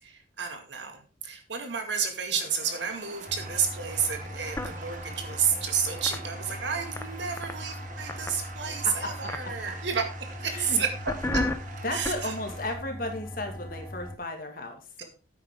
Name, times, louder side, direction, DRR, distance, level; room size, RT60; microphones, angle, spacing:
voice 1, 0.0-10.0 10.4-10.9 11.3-11.4 11.9-12.3 15.0-15.1, right 6 dB, 80° right, 5 dB, 2.2 m, -30 dB
sound 1, 2.4-12.7, right 3 dB, 45° right, 1.7 m, -45 dB
sound 2, 3.3-14.2, left 1 dB, 15° left, 0.8 m, -36 dB
voice 2, 10.5-10.8 11.8-15.0, left 2 dB, 50° left, 4 dB, 2.2 m, -34 dB
9.9 x 8.5 x 3.8 m, 0.34 s
head